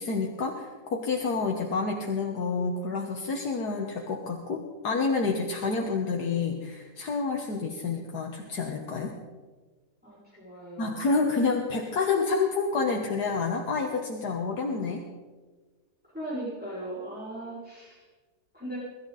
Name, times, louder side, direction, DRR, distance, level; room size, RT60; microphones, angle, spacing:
voice 1, 0.0-9.1 10.8-15.0, left 4 dB, 75° left, 1 dB, 1.9 m, -28 dB
voice 2, 10.0-11.0 16.1-18.1 18.5-18.8, right 1 dB, 5° right, -9 dB, 6.0 m, -38 dB
23.5 x 13.0 x 4.1 m, 1.3 s
omnidirectional pair, 1.7 m